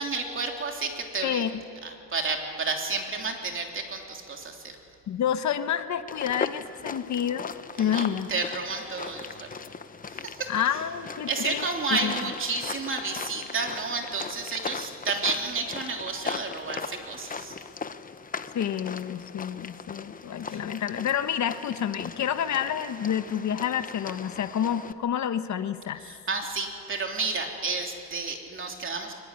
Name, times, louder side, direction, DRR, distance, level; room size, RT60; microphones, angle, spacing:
voice 1, 0.0-1.4 1.8-4.7 7.8-9.5 10.1-10.5 11.3-17.6 20.5-20.6 26.0-29.1, right 3 dB, 40° right, 2 dB, 3.3 m, -31 dB
voice 2, 5.1-8.3 10.5-11.7 11.9-12.1 18.5-26.0, left 9 dB, 60° left, 10 dB, 1.1 m, -29 dB
sound 1, 6.1-24.9, left 5 dB, 25° left, 0.8 m, -39 dB
22.5 x 20.0 x 9.8 m, 2.6 s
cardioid pair, 125°, 32 cm